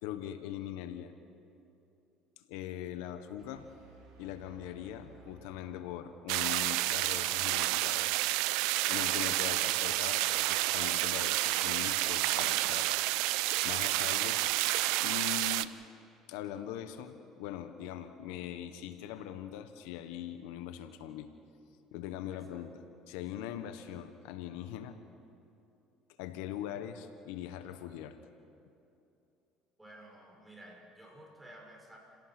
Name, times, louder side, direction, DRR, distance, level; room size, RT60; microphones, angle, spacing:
voice 1, 0.0-1.1 2.4-3.7 4.2-8.1 8.9-12.9 13.6-14.4 15.0-15.7 16.3-21.3 21.9-25.0 26.2-28.2, left 11 dB, 85° left, 9 dB, 1.3 m, -41 dB
sound 1, 3.4-6.4, right 3 dB, 60° right, 6.2 m, -57 dB
sound 2, 6.3-15.6, right 17 dB, 80° right, 0.6 m, -30 dB
voice 2, 22.3-22.6 29.8-32.0, right 1 dB, 10° right, -1 dB, 6.3 m, -53 dB
29.5 x 17.5 x 6.1 m, 2.7 s
supercardioid pair, 95°, 0 cm